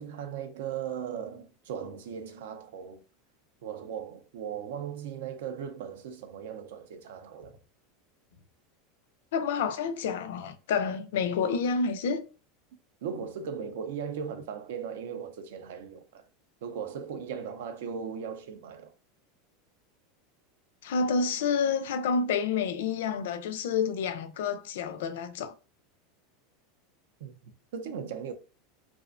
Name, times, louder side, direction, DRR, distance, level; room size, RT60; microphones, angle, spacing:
voice 1, 0.0-3.0 3.6-7.6 13.0-16.3 16.6-18.9 27.2-28.3, right 7 dB, 75° right, 0.4 m, -38 dB
voice 2, 9.3-12.2 20.8-25.5, left 5 dB, 80° left, 0.3 m, -29 dB
2.4 x 2.1 x 2.4 m
supercardioid pair, 170°, 0 cm